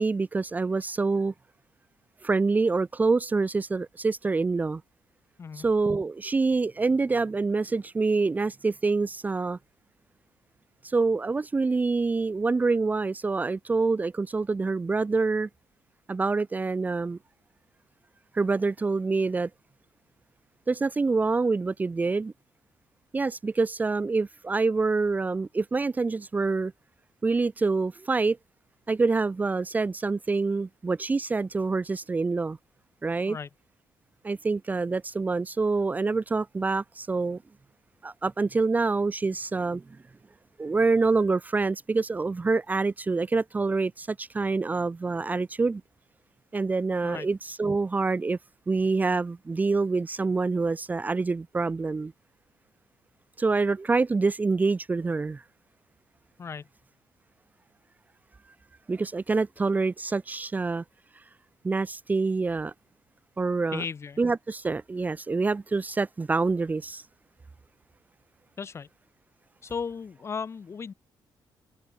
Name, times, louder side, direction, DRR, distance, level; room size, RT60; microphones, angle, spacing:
voice 1, 0.0-1.3 2.2-4.8 5.5-9.6 10.8-15.5 16.1-17.2 18.3-19.5 20.7-22.3 23.1-26.7 27.2-28.4 28.9-32.6 33.0-33.4 34.2-37.4 38.0-39.8 40.6-45.8 46.5-48.4 48.7-52.1 53.4-55.4 58.9-60.8 61.6-62.7 63.4-63.8 64.2-67.0, right 3 dB, 20° right, 1.1 m, -26 dB
voice 2, 63.7-64.2 68.6-68.9 69.6-70.9, left 6 dB, 35° left, 2.7 m, -35 dB
open air
cardioid pair, 135°, 8 cm